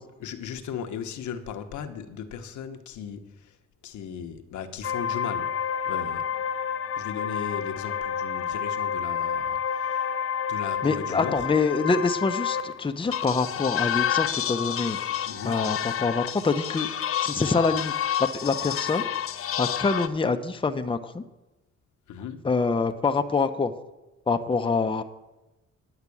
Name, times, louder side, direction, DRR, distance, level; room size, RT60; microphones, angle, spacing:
voice 1, 0.2-3.6 3.8-6.3 7.0-10.1 10.5-11.5 15.2-15.6 22.1-22.5, left 7 dB, 75° left, 1.1 m, -37 dB
sound 1, 4.8-12.9 13.1-20.1, left 8 dB, 45° left, 0.7 m, -29 dB
voice 2, 10.8-15.0 15.4-16.9 17.2-17.9 18.2-19.1 19.6-21.2 22.4-23.7 24.3-25.0, left 4 dB, 15° left, 0.8 m, -25 dB
10.5 x 5.9 x 8.5 m
cardioid pair, 90°, 30 cm